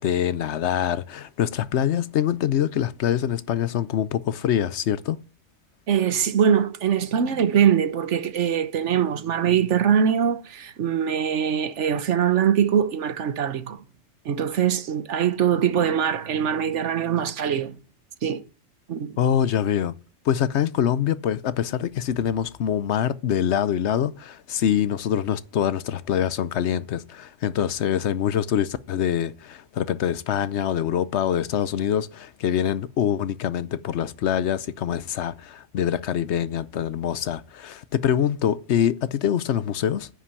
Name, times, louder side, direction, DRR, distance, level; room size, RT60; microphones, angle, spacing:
voice 1, 0.0-5.2 19.2-19.9 20.2-40.1, left 9 dB, 70° left, 0.9 m, -24 dB
voice 2, 5.9-13.8 14.2-17.8 18.2-18.4 18.9-19.2, right 8 dB, 75° right, 1.2 m, -22 dB
9.9 x 5.8 x 8.2 m
omnidirectional pair, 1.3 m